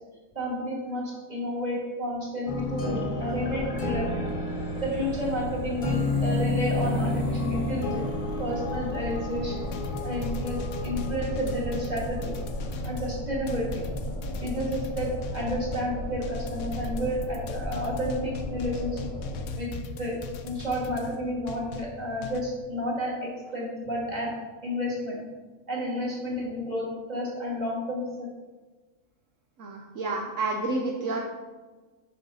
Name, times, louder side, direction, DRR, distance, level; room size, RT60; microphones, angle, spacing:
voice 1, 0.3-4.2 4.8-8.1 8.4-9.6 10.0-12.3 12.8-13.7 14.4-19.1 19.6-19.7 20.0-20.2 20.4-24.3 24.6-25.2 25.7-28.3, equal, 30° right, -5 dB, 2.2 m, -31 dB
sound 1, 2.5-12.7, left 2 dB, 40° left, 1.0 m, -31 dB
sound 2, 3.2-19.4, equal, 50° right, 1.5 m, -36 dB
sound 3, 9.7-22.4, left 4 dB, 80° left, 1.1 m, -39 dB
voice 2, 29.6-31.3, right 2 dB, 65° right, 0 dB, 1.0 m, -30 dB
7.5 x 4.4 x 5.5 m, 1.3 s
omnidirectional pair, 1.5 m